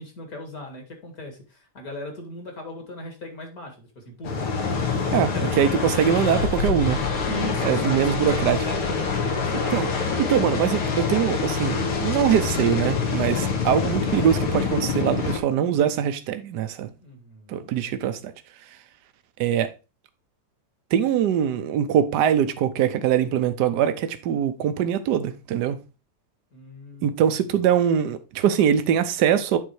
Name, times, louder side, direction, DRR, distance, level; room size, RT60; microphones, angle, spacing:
voice 1, 0.0-4.4 4.9-6.1 7.3-9.7 10.0-10.4 17.0-17.7 26.5-27.6, left 1 dB, 45° left, 2.2 m, -38 dB
sound 1, 4.2-15.4, left 5 dB, 75° left, 2.4 m, -25 dB
voice 2, 5.6-7.0 7.6-8.6 9.7-9.9 10.3-16.9 17.5-18.2 19.4-19.7 20.9-25.8 27.0-29.6, right 9 dB, 65° right, 1.1 m, -22 dB
9.3 x 3.9 x 4.6 m
omnidirectional pair, 2.4 m